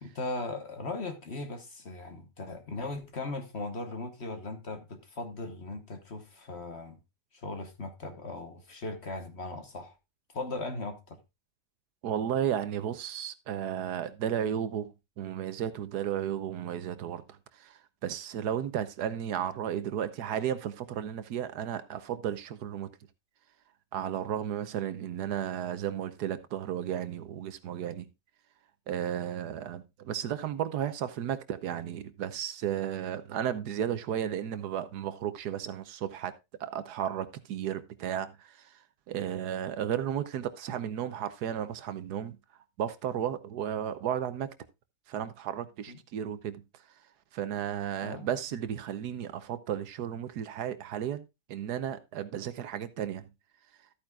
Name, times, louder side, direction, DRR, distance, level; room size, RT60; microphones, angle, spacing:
voice 1, 0.0-7.0 7.3-9.9 10.3-11.2 45.9-46.0 48.0-48.3, left 2 dB, 45° left, 1.3 m, -38 dB
voice 2, 12.0-22.9 23.9-28.1 28.9-36.3 36.6-38.8 39.1-42.4 42.8-44.5 45.1-46.6 47.3-53.3, right 9 dB, 70° right, 1.2 m, -34 dB
13.0 x 8.9 x 2.3 m
omnidirectional pair, 1.8 m